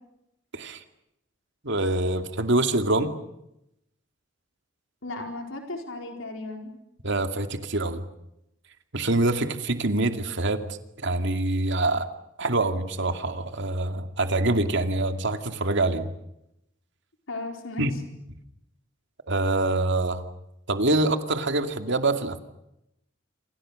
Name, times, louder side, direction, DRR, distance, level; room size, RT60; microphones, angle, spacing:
voice 1, 0.5-0.8 1.6-3.1 7.0-8.0 8.9-12.1 12.4-16.1 17.8-17.9 19.3-20.2 20.7-22.4, right 2 dB, 65° right, 7 dB, 2.5 m, -25 dB
voice 2, 5.0-6.7 17.3-17.9, left 2 dB, 80° left, 3 dB, 4.5 m, -35 dB
28.0 x 27.0 x 6.6 m, 0.83 s
head